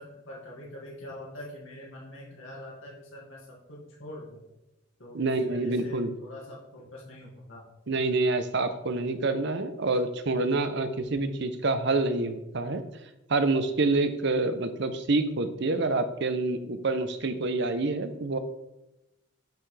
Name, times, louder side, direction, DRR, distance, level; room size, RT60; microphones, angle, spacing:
voice 1, 0.0-4.4 5.0-7.6, left 1 dB, 70° left, -4 dB, 2.2 m, -44 dB
voice 2, 5.1-6.1 7.9-12.8 13.3-18.4, right 3 dB, 60° right, 9 dB, 0.7 m, -27 dB
10.0 x 5.7 x 3.4 m, 0.94 s
head